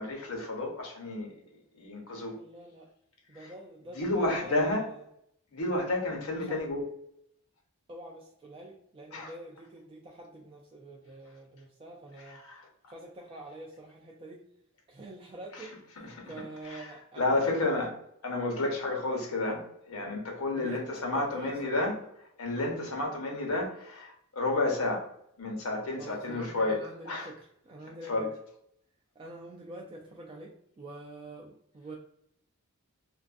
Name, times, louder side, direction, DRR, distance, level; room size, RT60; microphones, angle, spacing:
voice 1, 0.0-1.4 1.7-2.4 3.9-4.8 5.5-6.8 9.1-9.3 12.3-12.7 15.5-15.7 16.0-16.3 16.6-16.9 17.2-17.9 18.2-21.9 22.4-25.0 25.4-26.8 27.1-27.3 28.1-28.3, left 2 dB, 75° left, 1 dB, 0.8 m, -31 dB
voice 2, 2.4-2.9 3.3-5.0 6.3-6.7 7.9-12.4 12.9-14.4 14.9-17.7 20.5-20.8 21.1-21.9 26.0-28.3 29.2-32.0, right 1 dB, 25° right, -2 dB, 0.3 m, -46 dB
2.4 x 2.4 x 2.3 m, 0.73 s
head